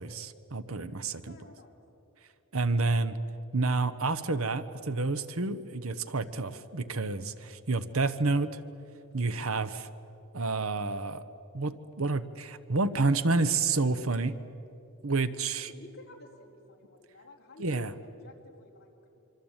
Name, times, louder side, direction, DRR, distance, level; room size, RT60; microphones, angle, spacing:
voice 1, 0.0-1.3 2.5-3.2 3.5-8.6 9.1-9.9 10.3-11.2 11.5-14.3 15.0-15.7 17.6-17.9, right 3 dB, 65° right, 12 dB, 1.1 m, -29 dB
voice 2, 1.3-1.7 7.7-8.1 15.6-19.2, left 2 dB, 45° left, -1 dB, 4.4 m, -53 dB
26.0 x 25.0 x 9.0 m, 2.9 s
head